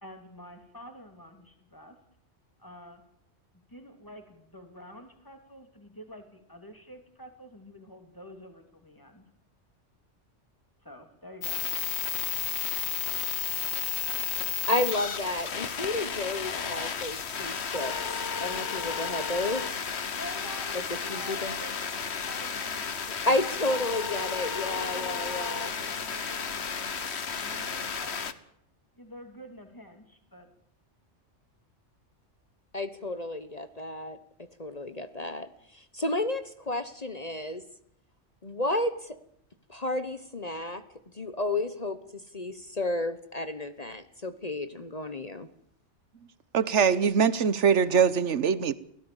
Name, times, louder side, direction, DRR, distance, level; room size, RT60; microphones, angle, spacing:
voice 1, 0.0-2.0 2.6-3.0 3.7-9.2 10.8-11.6 20.1-23.0 24.4-28.3 29.0-30.5, equal, 15° left, 5 dB, 3.5 m, -47 dB
sound 1, 11.4-28.3, left 6 dB, 65° left, 1.4 m, -33 dB
voice 2, 14.3-19.8 21.1-21.6 22.9-25.7 32.7-34.2 34.6-37.6 38.4-39.2 39.7-40.8 41.1-45.5, left 2 dB, 35° left, 11 dB, 1.2 m, -32 dB
voice 3, 46.5-48.7, right 6 dB, 75° right, 17 dB, 1.4 m, -22 dB
23.5 x 17.0 x 7.3 m, 0.71 s
omnidirectional pair, 1.2 m